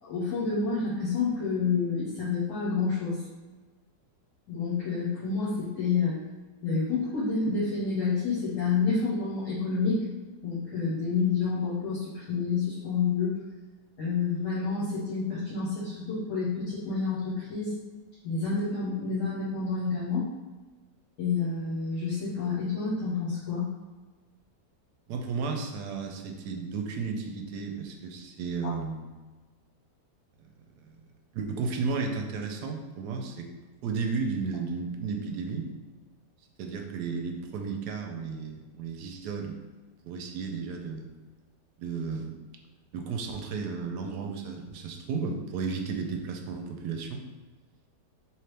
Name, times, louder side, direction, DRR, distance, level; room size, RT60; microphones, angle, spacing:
voice 1, 0.0-3.2 4.5-6.2 6.6-10.0 10.4-13.4 14.0-17.7 18.2-20.3 21.2-23.7 28.6-28.7, left 4 dB, 70° left, -11 dB, 1.8 m, -29 dB
voice 2, 25.1-29.1 30.8-31.0 31.3-33.5 33.8-35.7 36.6-39.6 40.0-41.1 41.8-42.4 42.9-47.2, right 4 dB, 75° right, 3 dB, 1.1 m, -33 dB
3.8 x 3.0 x 3.3 m, 1.3 s
omnidirectional pair, 1.9 m